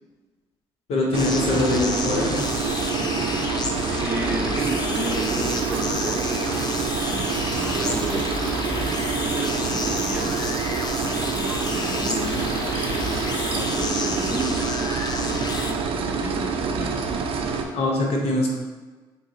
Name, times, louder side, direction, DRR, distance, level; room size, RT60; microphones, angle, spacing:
voice 1, 0.9-2.5 17.7-18.5, left 2 dB, 70° left, -1 dB, 0.8 m, -23 dB
sound 1, 1.1-15.7, left 4 dB, 40° left, 0.4 m, -31 dB
sound 2, 1.1-17.6, right 5 dB, 60° right, 0.4 m, -26 dB
voice 2, 3.9-6.7 7.1-8.4 9.1-10.5 10.8-15.0 16.0-17.1, right 1 dB, 20° right, 1 dB, 0.6 m, -33 dB
sound 3, 4.9-13.7, equal, 15° left, 0.9 m, -42 dB
3.9 x 2.0 x 3.7 m, 1.3 s
supercardioid pair, 60°, 10 cm